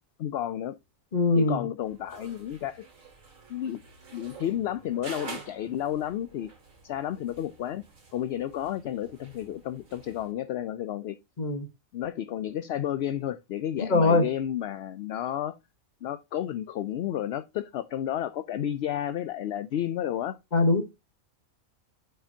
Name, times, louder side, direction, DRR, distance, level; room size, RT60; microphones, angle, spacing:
voice 1, 0.2-0.8 1.3-2.9 3.5-3.8 4.1-6.5 6.8-7.8 8.1-11.2 11.9-15.6 16.0-20.4, left 11 dB, 65° left, 0.7 m, -31 dB
voice 2, 1.1-1.7 11.4-11.7 13.8-14.3 20.5-20.8, left 3 dB, 35° left, 1.2 m, -22 dB
sound 1, 1.8-10.3, right 4 dB, 75° right, 2.7 m, -48 dB
8.6 x 5.7 x 2.7 m
omnidirectional pair, 1.4 m